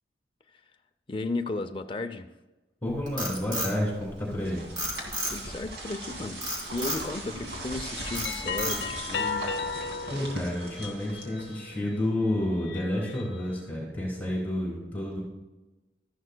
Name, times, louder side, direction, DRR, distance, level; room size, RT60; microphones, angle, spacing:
voice 1, 1.1-2.3 5.0-6.4 6.7-9.5, left 2 dB, 30° left, 5 dB, 0.5 m, -35 dB
voice 2, 2.8-4.6 10.1-15.2, left 1 dB, 10° left, -3 dB, 3.1 m, -30 dB
Frog, 2.9-4.4 4.8-5.6 6.4-7.1 7.5-7.8 8.1-9.1, right 1 dB, 25° right, 3.2 m, -32 dB
sound 1, 4.0-11.8, right 1 dB, 65° right, 2.5 m, -39 dB
sound 2, 6.7-7.0 7.7-11.9 12.4-13.5, left 5 dB, 70° left, 0.8 m, -36 dB
13.0 x 11.0 x 2.2 m, 1.1 s
head